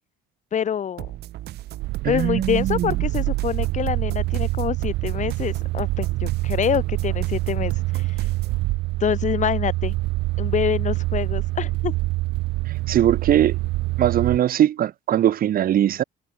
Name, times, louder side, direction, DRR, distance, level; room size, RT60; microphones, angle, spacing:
voice 1, 0.5-1.1 2.1-8.1 9.0-10.0 10.4-11.9, left 8 dB, 45° left, 3.7 m, -26 dB
sound 1, 1.0-8.6, right 15 dB, 75° right, 3.8 m, -36 dB
sound 2, 1.8-14.4, right 20 dB, 90° right, 7.5 m, -25 dB
voice 2, 2.0-2.9 12.9-13.6 14.0-16.0, right 11 dB, 60° right, 3.4 m, -20 dB
cardioid pair, 110°, 17 cm